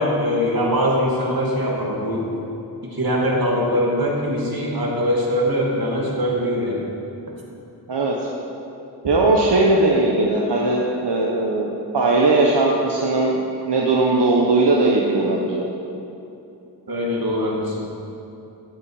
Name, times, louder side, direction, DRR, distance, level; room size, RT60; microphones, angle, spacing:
voice 1, 0.0-2.3 2.8-6.8 16.9-17.9, equal, 60° right, -3 dB, 2.5 m, -22 dB
voice 2, 9.0-13.4 13.7-15.6, right 2 dB, 85° right, -2 dB, 1.1 m, -19 dB
13.0 x 8.9 x 4.9 m, 2.9 s
wide cardioid pair, 50°, 40 cm